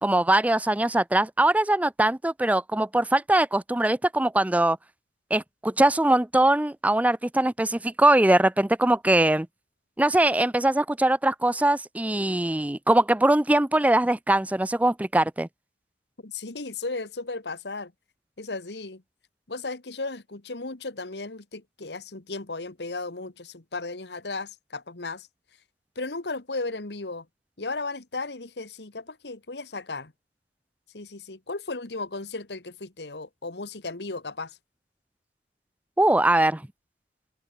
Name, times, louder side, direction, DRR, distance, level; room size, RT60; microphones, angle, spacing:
voice 1, 0.0-4.8 5.3-9.5 10.0-15.5 36.0-36.6, right 1 dB, 10° right, 0.5 m, -22 dB
voice 2, 16.2-17.9 18.4-19.0 19.5-25.3 25.9-27.3 27.6-30.1 30.9-34.6, left 3 dB, 65° left, 1.7 m, -35 dB
head